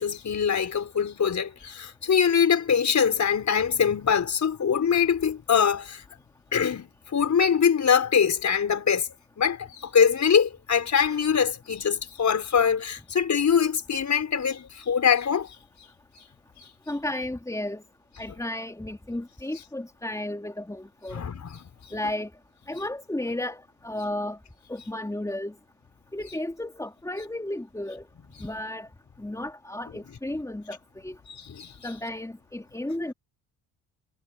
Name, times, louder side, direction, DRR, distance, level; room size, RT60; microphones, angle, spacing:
voice 1, 0.0-6.0 6.5-9.1 9.4-15.6 21.1-21.6 31.3-31.7, left 7 dB, 45° left, 5.3 m, -23 dB
voice 2, 16.9-17.8 18.2-21.2 21.9-22.3 22.7-24.4 24.7-25.5 26.1-28.0 28.4-28.9 29.2-31.2 31.8-33.1, left 1 dB, 10° left, 3.2 m, -33 dB
supercardioid pair, 60°, 39 cm